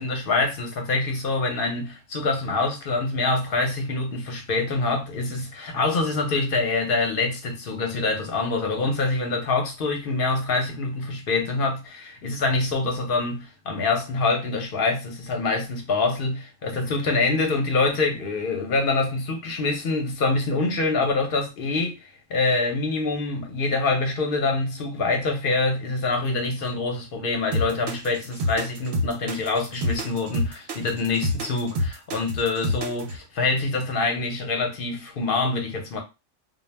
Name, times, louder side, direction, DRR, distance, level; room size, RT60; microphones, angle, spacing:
voice 1, 0.0-36.0, left 3 dB, 55° left, 0.7 m, -25 dB
sound 1, 27.5-33.2, left 1 dB, 65° right, 0.8 m, -27 dB
2.2 x 2.1 x 3.2 m
omnidirectional pair, 1.3 m